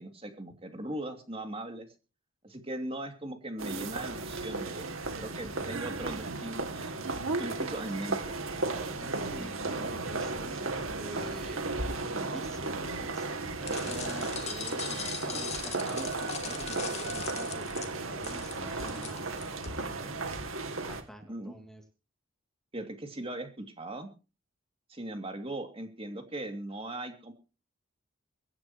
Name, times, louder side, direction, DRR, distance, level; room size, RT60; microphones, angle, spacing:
voice 1, 0.0-1.9 2.4-4.9 5.2-6.9 7.4-8.4 21.3-21.6 22.7-24.1 24.9-27.3, right 1 dB, 25° right, 5 dB, 2.6 m, -39 dB
sound 1, 3.6-21.0, right 3 dB, 80° right, 2.6 m, -35 dB
voice 2, 8.6-11.7 12.1-17.7 18.0-20.2 20.8-21.8, equal, ahead, 4 dB, 2.7 m, -48 dB
sound 2, 13.7-19.7, left 6 dB, 30° left, 2.9 m, -40 dB
25.0 x 11.5 x 3.1 m, 0.34 s
head